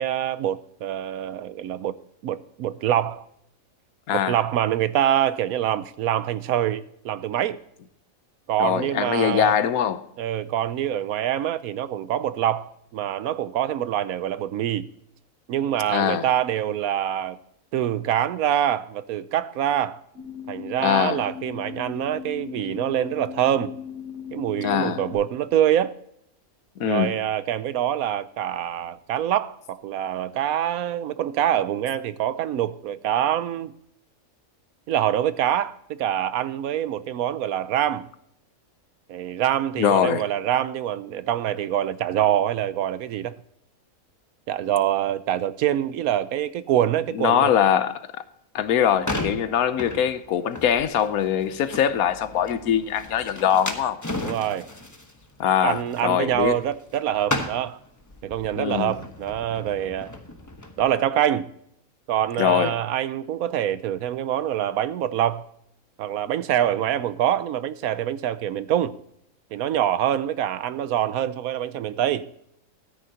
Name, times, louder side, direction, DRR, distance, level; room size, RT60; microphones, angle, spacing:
voice 1, 0.0-1.9 2.2-3.2 4.1-7.6 8.5-9.5 10.2-14.9 15.5-17.4 17.7-20.0 20.5-23.7 24.3-25.9 26.8-33.7 34.9-38.1 39.1-43.3 44.5-47.5 54.2-54.7 55.6-57.8 58.2-60.2 60.8-61.5 62.1-65.5 66.0-68.9 69.5-72.3, right 11 dB, 80° right, 1.1 m, -25 dB
voice 2, 8.6-10.0 15.9-16.3 20.8-21.2 24.6-25.0 26.8-27.2 39.8-40.2 47.1-47.9 48.5-54.0 55.4-56.6 58.6-58.9 62.4-62.7, left 9 dB, 80° left, 1.2 m, -22 dB
sound 1, 20.1-25.1, left 8 dB, 50° right, 3.2 m, -37 dB
sound 2, 48.6-57.0 57.2-60.9, left 1 dB, 15° left, 1.0 m, -35 dB
13.5 x 10.0 x 2.8 m
omnidirectional pair, 1.5 m